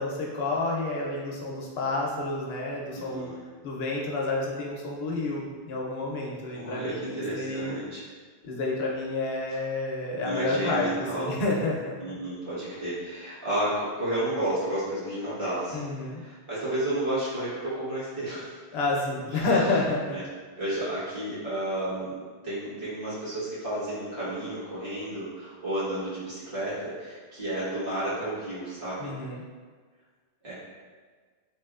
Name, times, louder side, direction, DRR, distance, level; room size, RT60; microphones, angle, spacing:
voice 1, 0.0-3.2 3.6-7.8 8.4-12.2 15.7-16.2 18.7-20.2 29.0-29.4, left 2 dB, 80° left, -2 dB, 0.9 m, -29 dB
voice 2, 2.9-3.4 6.5-8.0 10.2-11.3 12.0-18.5 19.3-19.7 20.1-20.2 20.6-22.2 22.4-29.1 30.4-30.5, right 1 dB, 60° right, -11 dB, 1.5 m, -32 dB
3.0 x 2.9 x 2.4 m, 1.5 s
omnidirectional pair, 1.0 m